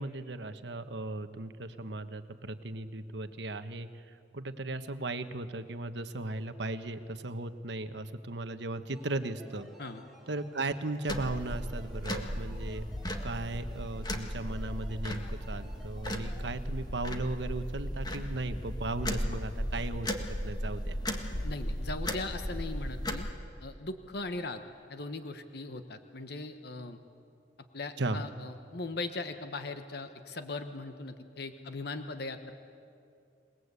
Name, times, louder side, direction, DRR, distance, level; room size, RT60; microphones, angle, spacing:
voice 1, 0.0-9.7 10.3-12.8 13.2-20.2 20.4-21.0 28.0-28.2, right 2 dB, 70° right, 9 dB, 1.2 m, -37 dB
sound 1, 8.9-16.6, equal, ahead, 3.8 m, -56 dB
sound 2, 11.1-23.3, equal, 25° left, 1.7 m, -36 dB
voice 2, 21.4-23.3 23.6-24.6 24.9-27.0 27.7-32.5, left 3 dB, 60° left, 8 dB, 1.2 m, -39 dB
28.0 x 19.5 x 8.3 m, 2.6 s
head